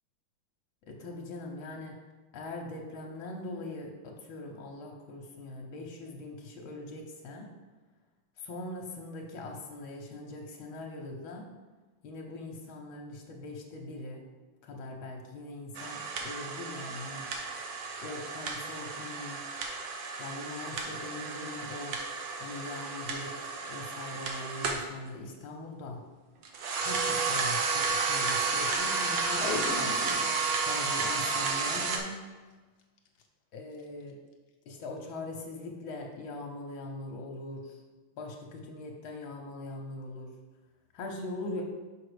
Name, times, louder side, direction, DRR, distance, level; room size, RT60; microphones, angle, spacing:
voice 1, 0.9-2.0 2.3-7.6 8.4-11.5 12.0-14.3 14.6-17.3 18.0-19.4 20.2-22.0 22.4-26.0 26.8-30.0 30.6-32.3 33.5-34.2 34.7-37.8 38.2-40.3 40.9-41.6, left 2 dB, 75° left, 1 dB, 1.6 m, -41 dB
sound 1, 15.8-24.9 26.4-32.0, right 4 dB, 70° right, 1.4 m, -32 dB
Packing tape duct tape, 29.2-30.4 30.7-30.8 31.0-31.1 31.6-32.0 33.0-33.2 33.8-33.9, left 4 dB, 60° left, 1.1 m, -37 dB
6.3 x 5.1 x 5.0 m, 1.3 s
omnidirectional pair, 2.2 m